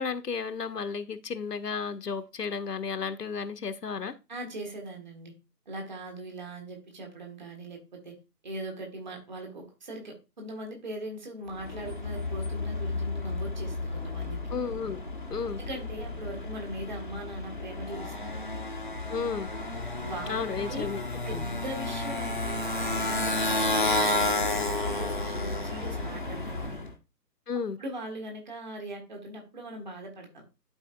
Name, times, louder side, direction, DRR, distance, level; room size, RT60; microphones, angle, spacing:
voice 1, 0.0-4.2 14.5-15.0 15.3-15.6 19.1-19.5 20.3-21.0 21.3-21.5 27.5-27.8, left 5 dB, 70° left, 0.8 m, -33 dB
voice 2, 4.3-5.3 5.6-8.1 8.4-14.4 15.6-18.4 20.0-20.9 21.2-26.8 27.8-30.4, right 1 dB, 30° right, 1.5 m, -40 dB
Motorcycle, 11.5-26.9, left 2 dB, 30° left, 0.6 m, -31 dB
11.5 x 4.1 x 2.4 m
figure-of-eight pair, 155°, 49 cm